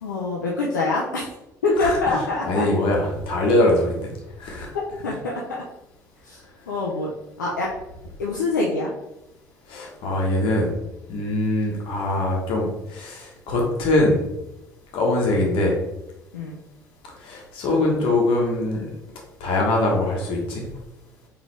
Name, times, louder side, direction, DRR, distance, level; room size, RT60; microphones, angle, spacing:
voice 1, 0.0-1.3 1.6-2.7 4.7-5.6 6.2-6.4 6.7-7.1 7.4-7.7 8.2-8.9 16.3-16.6, left 3 dB, 85° left, -3 dB, 0.6 m, -25 dB
voice 2, 2.5-4.1 4.4-4.7 9.7-10.7 11.1-14.2 14.9-15.8 17.2-18.8 19.4-20.7, left 2 dB, 60° left, -1 dB, 1.3 m, -22 dB
4.0 x 3.4 x 3.3 m, 0.92 s
hypercardioid pair, 55°, 10 cm